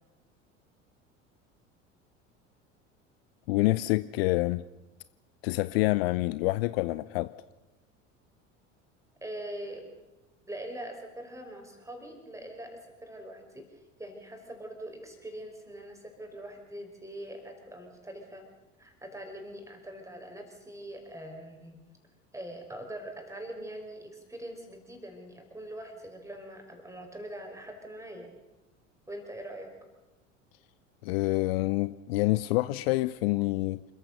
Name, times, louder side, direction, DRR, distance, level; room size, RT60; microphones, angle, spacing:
voice 1, 3.5-4.6 5.4-7.4 31.0-33.8, left 20 dB, 50° left, 0.6 m, -27 dB
voice 2, 9.2-9.9 10.5-18.4 18.8-21.8 22.3-28.3 29.1-29.7, right 1 dB, 10° right, 5.4 m, -43 dB
27.5 x 14.5 x 6.7 m
figure-of-eight pair, 70°, 38 cm